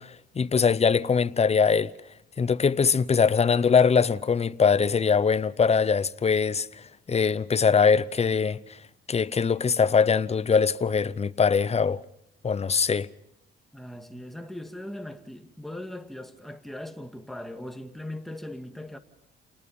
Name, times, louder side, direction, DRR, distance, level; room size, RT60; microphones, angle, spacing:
voice 1, 0.0-1.9 2.4-8.8 9.1-12.0 12.4-13.1, left 6 dB, 30° left, 0.8 m, -22 dB
voice 2, 13.7-19.0, left 1 dB, ahead, 1.9 m, -39 dB
29.5 x 19.0 x 5.5 m
cardioid pair, 90°, 20 cm